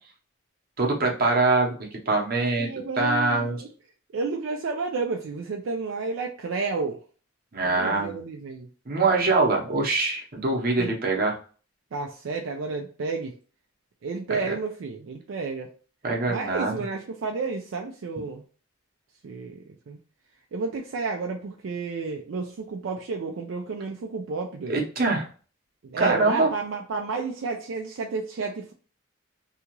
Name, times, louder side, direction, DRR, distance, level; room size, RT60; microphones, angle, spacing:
voice 1, 0.8-2.7 3.0-3.6 7.5-8.1 8.9-11.3 16.0-16.7 24.7-25.3 26.0-26.5, right 3 dB, 45° right, 0 dB, 0.8 m, -23 dB
voice 2, 2.4-3.7 4.1-7.0 7.6-8.7 10.8-10.9 11.9-13.4 14.0-15.7 16.3-18.4 19.2-20.0 20.5-24.8 25.8-28.7, right 4 dB, 70° right, 2 dB, 0.4 m, -31 dB
2.8 x 2.4 x 2.9 m, 0.39 s
head